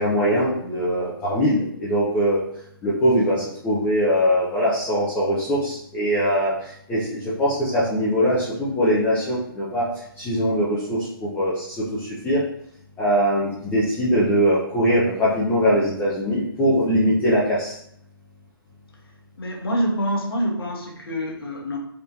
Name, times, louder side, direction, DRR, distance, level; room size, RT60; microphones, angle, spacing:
voice 1, 0.0-2.4 2.8-9.8 10.2-12.4 13.0-17.8, equal, 10° left, -10 dB, 0.6 m, -22 dB
voice 2, 19.4-21.8, equal, 70° left, 0 dB, 1.0 m, -26 dB
3.6 x 2.4 x 2.8 m, 0.70 s
hypercardioid pair, 140°, 13 cm